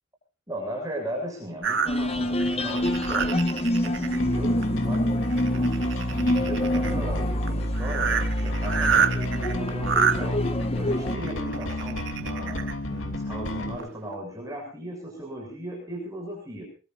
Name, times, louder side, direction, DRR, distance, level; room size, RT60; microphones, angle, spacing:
voice 1, 0.5-3.4 3.8-10.5 10.7-16.6, right 1 dB, 15° right, 0 dB, 6.7 m, -36 dB
sound 1, 1.6-4.2 4.6-5.0 5.2-6.9 7.5-7.6 7.8-10.2 11.2-12.7 13.3-13.4 13.8-13.9, right 6 dB, 60° right, 2.1 m, -27 dB
sound 2, 1.9-11.2, left 1 dB, 30° left, 1.4 m, -28 dB
Bass guitar, 4.2-13.8, equal, 65° left, 3.1 m, -29 dB
22.5 x 22.0 x 2.6 m, 0.36 s
head